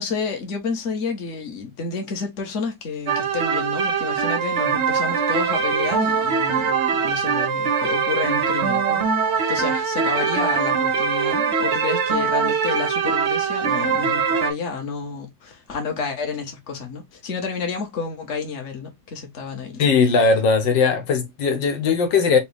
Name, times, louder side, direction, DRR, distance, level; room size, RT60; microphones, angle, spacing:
voice 1, 0.0-19.8, left 5 dB, 45° left, 1.4 m, -30 dB
sound 1, 3.1-14.5, right 6 dB, 55° right, 0.8 m, -22 dB
voice 2, 19.8-22.4, left 5 dB, 80° left, 1.6 m, -19 dB
5.1 x 2.4 x 3.3 m
omnidirectional pair, 2.0 m